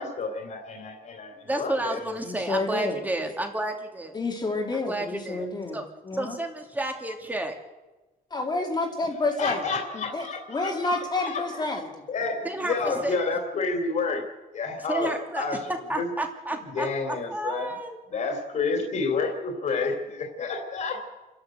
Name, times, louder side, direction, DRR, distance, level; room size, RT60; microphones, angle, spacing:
voice 1, 0.0-2.2 2.5-2.6 3.2-3.3 4.4-4.5 9.2-11.8 12.1-14.2 14.5-16.1 16.6-17.7 18.1-21.0, left 4 dB, 50° left, 3 dB, 3.2 m, -30 dB
voice 2, 1.5-4.1 4.9-5.5 5.7-5.9 6.1-7.6 12.4-13.3 14.9-15.5 15.9-18.0 19.8-19.9, right 2 dB, 10° right, 3 dB, 2.6 m, -31 dB
voice 3, 2.2-3.0 4.1-5.8 6.0-6.4 8.3-9.6 9.9-11.9, left 2 dB, 25° left, 1 dB, 2.5 m, -29 dB
28.5 x 11.5 x 8.0 m, 1.1 s
cardioid pair, 155°, 16 cm